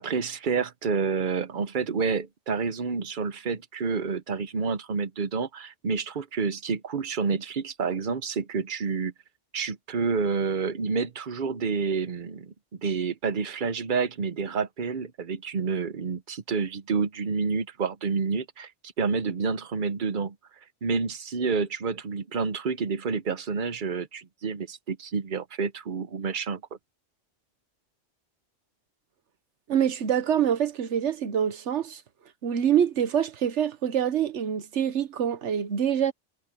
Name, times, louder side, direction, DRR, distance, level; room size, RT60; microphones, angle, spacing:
voice 1, 0.0-9.1 9.5-18.7 19.0-20.3 20.8-26.6, right 5 dB, 45° right, 1.0 m, -29 dB
voice 2, 29.7-32.0 32.4-36.1, right 9 dB, 70° right, 1.3 m, -25 dB
omnidirectional pair, 1.2 m